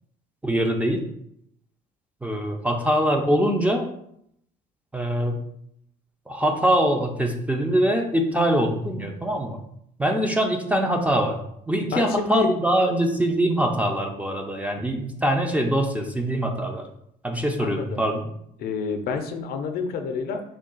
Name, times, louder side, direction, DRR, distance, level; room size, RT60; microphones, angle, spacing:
voice 1, 0.4-1.0 2.2-3.8 4.9-5.4 6.3-9.6 10.0-11.4 11.7-16.8 17.2-18.2, right 1 dB, 10° right, 3 dB, 0.5 m, -23 dB
voice 2, 11.9-12.5 17.6-18.0 18.6-20.4, left 5 dB, 65° left, 6 dB, 0.5 m, -28 dB
3.5 x 2.3 x 3.8 m, 0.72 s
cardioid pair, 110°, 17 cm